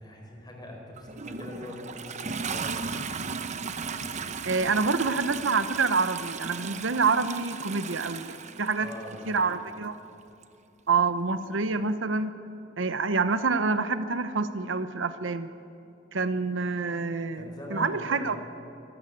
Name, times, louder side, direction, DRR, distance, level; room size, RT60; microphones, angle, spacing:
voice 1, 0.0-2.7 8.8-9.5 17.3-18.4, left 1 dB, 20° left, 0 dB, 4.7 m, -42 dB
Toilet flush, 1.0-9.4 10.4-10.5, right 5 dB, 40° right, 0.8 m, -36 dB
voice 2, 4.4-8.9 9.3-9.9 10.9-12.3 12.8-15.5 16.1-18.4, right 4 dB, 80° right, 11 dB, 0.9 m, -27 dB
24.5 x 13.0 x 8.6 m, 2.7 s
head